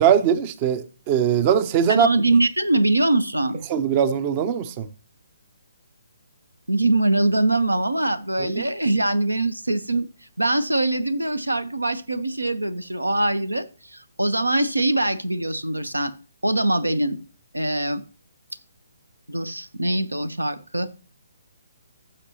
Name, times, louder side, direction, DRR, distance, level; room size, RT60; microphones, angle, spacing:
voice 1, 0.0-2.1 3.7-4.9 8.6-8.7, right 8 dB, 30° right, 0.6 m, -20 dB
voice 2, 1.9-3.6 6.7-10.1 10.4-16.1 16.4-17.2 17.5-18.0 19.3-20.9, right 2 dB, 85° right, 0.9 m, -22 dB
15.0 x 6.6 x 2.9 m
figure-of-eight pair, 135°, 0 cm